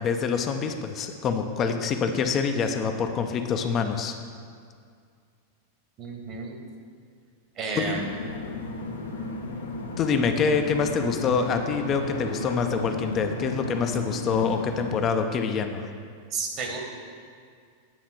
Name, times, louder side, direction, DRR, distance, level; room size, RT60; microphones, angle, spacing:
voice 1, 0.0-4.1 7.8-8.0 10.0-15.9, left 5 dB, 30° left, 6 dB, 0.5 m, -26 dB
voice 2, 6.0-6.6 7.6-8.1 16.3-16.8, right 4 dB, 35° right, 1 dB, 1.1 m, -31 dB
sound 1, 7.8-15.0, left 2 dB, 75° left, 0.7 m, -34 dB
8.9 x 3.6 x 6.1 m, 2.1 s
figure-of-eight pair, 90°, 0 cm